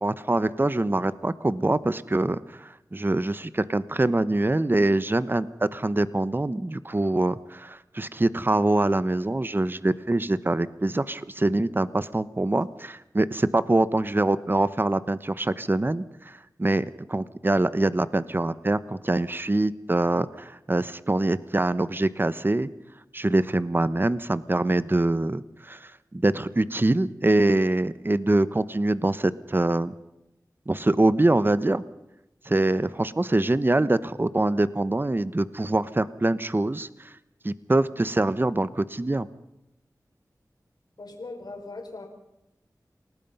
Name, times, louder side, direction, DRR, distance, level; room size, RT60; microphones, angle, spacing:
voice 1, 0.0-22.7 23.1-29.9 30.7-31.8 32.4-37.1 37.4-39.3, right 2 dB, 30° right, 15 dB, 1.0 m, -24 dB
voice 2, 41.0-42.1, left 3 dB, 80° left, 3 dB, 5.2 m, -39 dB
29.0 x 18.5 x 5.5 m, 0.86 s
wide cardioid pair, 55°, 7 cm